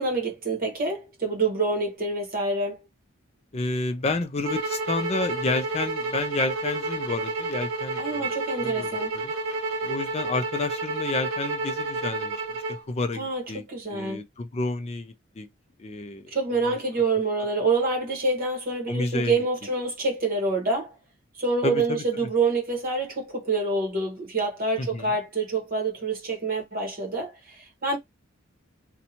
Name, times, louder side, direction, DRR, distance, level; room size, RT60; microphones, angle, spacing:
voice 1, 0.0-2.8 8.0-9.1 13.1-14.2 16.3-21.0 21.3-28.0, right 3 dB, 40° right, 1.0 m, -27 dB
voice 2, 3.5-8.3 8.6-9.3 9.8-12.4 12.7-13.6 13.9-15.5 15.8-16.4 16.6-16.8 18.9-19.4 21.6-22.0 24.8-25.1, left 3 dB, 30° left, 0.4 m, -30 dB
sound 1, 4.4-12.8, right 3 dB, 70° right, 0.8 m, -30 dB
2.6 x 2.2 x 2.8 m
head